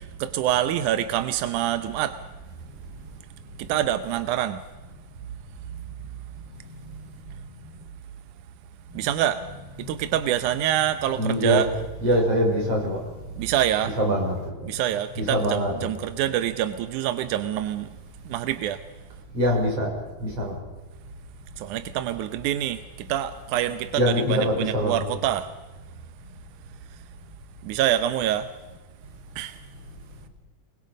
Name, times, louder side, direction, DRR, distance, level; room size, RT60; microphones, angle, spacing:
voice 1, 0.2-2.2 3.7-4.6 9.0-9.4 9.9-11.7 13.4-14.0 14.6-17.9 18.3-18.8 21.6-22.8 23.1-25.5 27.6-28.5 29.4-29.5, right 11 dB, 75° right, 11 dB, 1.9 m, -25 dB
voice 2, 6.7-7.1 11.2-11.6 12.0-13.0 14.0-14.7 15.2-15.9 19.3-19.9 20.2-20.5 23.9-25.0, equal, 40° right, 0 dB, 6.5 m, -24 dB
30.0 x 21.0 x 5.3 m, 1.2 s
omnidirectional pair, 4.3 m